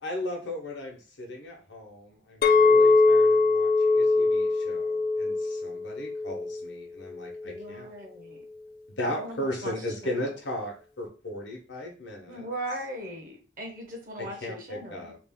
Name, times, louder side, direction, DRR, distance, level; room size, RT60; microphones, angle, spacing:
voice 1, 0.0-7.9 9.0-12.5 14.2-15.2, left 1 dB, 75° left, 0 dB, 0.9 m, -36 dB
Chink clink, 2.4-6.7 7.2-7.6, left 3 dB, 50° left, 0.3 m, -22 dB
voice 2, 7.4-8.4 9.1-9.7 10.0-10.2 12.3-15.1, right 1 dB, 45° right, 1 dB, 0.9 m, -39 dB
3.1 x 2.4 x 3.5 m, 0.37 s
head